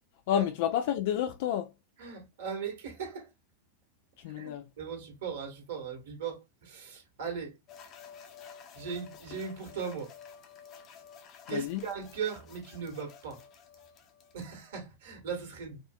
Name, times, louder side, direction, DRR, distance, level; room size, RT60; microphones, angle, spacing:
voice 1, 0.3-1.7 4.2-4.7 11.5-11.8, left 10 dB, 50° left, 0.4 m, -30 dB
voice 2, 2.0-3.3 4.4-7.5 8.8-10.1 11.5-13.4 14.3-15.8, right 6 dB, 60° right, 1.6 m, -38 dB
Soundscape Regenboog Asma Chahine Nara Akop, 7.7-14.4, left 7 dB, 35° left, 0.9 m, -51 dB
5.1 x 2.5 x 2.2 m
figure-of-eight pair, 90°, 0 cm